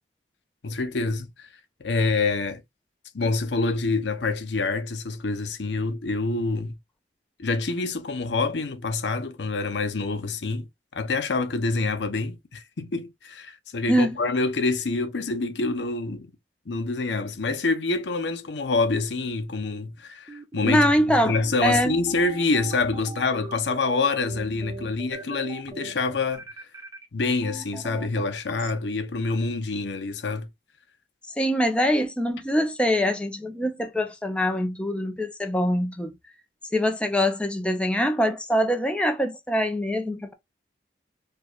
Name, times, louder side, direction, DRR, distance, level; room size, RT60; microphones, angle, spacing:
voice 1, 0.6-1.5 1.8-2.6 3.1-6.8 7.4-10.7 10.9-16.3 16.7-26.4 27.1-30.5, left 3 dB, 80° left, 0.7 m, -26 dB
sound 1, 20.3-28.7, right 3 dB, 20° right, 0.9 m, -40 dB
voice 2, 20.6-21.3 21.6-21.9 31.4-36.1 36.7-40.3, equal, 5° left, 0.7 m, -23 dB
4.5 x 2.3 x 2.4 m
head